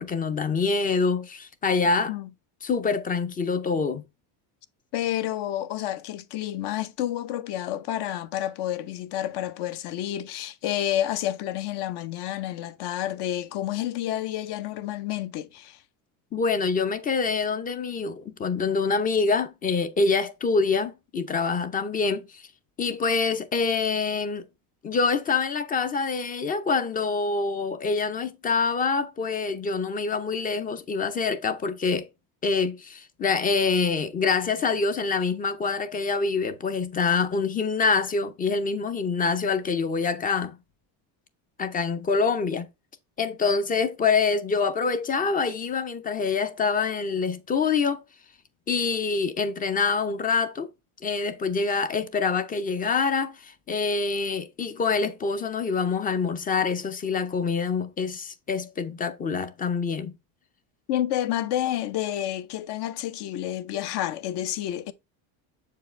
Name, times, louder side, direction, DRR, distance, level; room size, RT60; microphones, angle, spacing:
voice 1, 0.0-2.1 2.6-4.0 16.3-22.5 22.8-24.4 24.8-32.1 32.4-40.6 41.6-42.7 43.2-48.0 48.7-50.7 51.0-60.1, left 4 dB, 20° left, 0.5 m, -25 dB
voice 2, 4.9-15.8 60.9-64.9, left 12 dB, 55° left, 0.8 m, -29 dB
7.0 x 4.7 x 3.2 m
cardioid pair, 135°, 49 cm